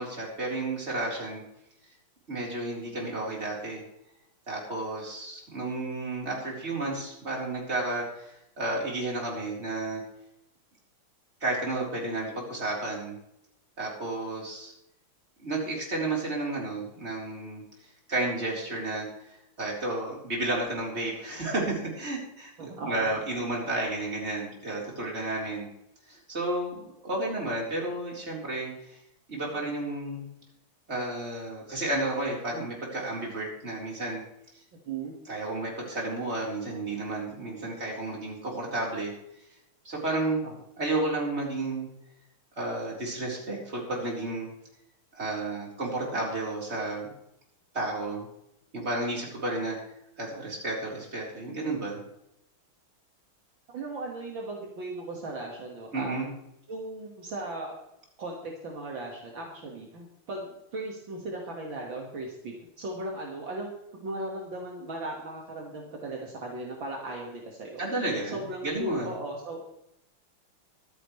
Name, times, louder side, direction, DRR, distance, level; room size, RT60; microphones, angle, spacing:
voice 1, 0.0-1.4 2.3-3.8 4.5-10.0 11.4-13.2 13.8-14.7 15.4-22.5 22.8-25.7 26.1-29.0 29.3-30.3 30.9-34.2 35.3-39.1 39.8-40.4 40.8-41.9 42.6-44.5 45.1-47.1 47.7-48.3 48.7-49.8 50.2-52.0 55.9-56.3 67.8-69.1, right 2 dB, 30° right, -3 dB, 4.3 m, -32 dB
voice 2, 22.6-23.1 34.9-35.2 40.4-40.5 53.7-56.2 56.7-57.8 58.2-63.7 64.0-67.8 68.3-69.6, right 2 dB, 65° right, -1 dB, 2.6 m, -37 dB
24.5 x 9.4 x 3.3 m, 0.81 s
omnidirectional pair, 2.3 m